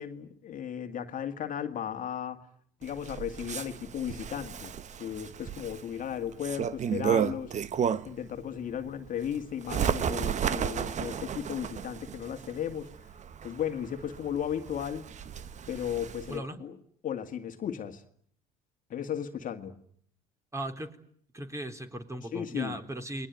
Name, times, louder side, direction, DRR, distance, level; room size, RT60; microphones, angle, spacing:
voice 1, 0.0-2.4 2.8-4.7 5.0-7.5 8.0-12.9 13.4-15.1 15.7-16.8 17.0-18.0 18.9-19.8 22.3-22.8, left 9 dB, 45° left, 2.0 m, -35 dB
Bird, 2.8-8.3 8.7-16.4, right 8 dB, 40° right, 1.2 m, -33 dB
voice 2, 16.3-16.6 20.5-20.9 21.3-23.3, right 1 dB, 15° right, 3.8 m, -37 dB
29.5 x 21.0 x 9.5 m
hypercardioid pair, 70°, 19 cm